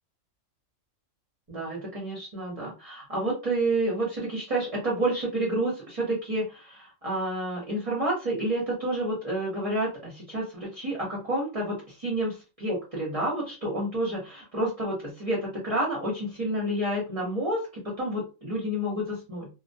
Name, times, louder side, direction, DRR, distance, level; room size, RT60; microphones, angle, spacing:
voice 1, 1.5-19.5, right 1 dB, 35° right, -4 dB, 0.6 m, -29 dB
2.2 x 2.1 x 2.6 m, 0.31 s
omnidirectional pair, 1.4 m